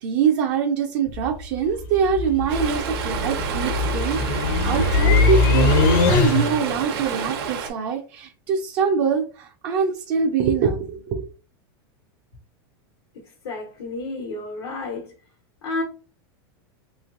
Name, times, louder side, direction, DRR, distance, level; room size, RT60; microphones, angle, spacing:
voice 1, 0.0-11.3, right 6 dB, 40° right, 0.5 m, -24 dB
sound 1, 1.1-6.7, left 3 dB, 50° left, 0.6 m, -21 dB
Stream, 2.5-7.7, right 6 dB, 70° right, 1.0 m, -30 dB
voice 2, 13.1-15.1 15.6-15.8, left 3 dB, 90° left, 1.1 m, -31 dB
3.1 x 3.1 x 2.5 m
supercardioid pair, 170°, 13 cm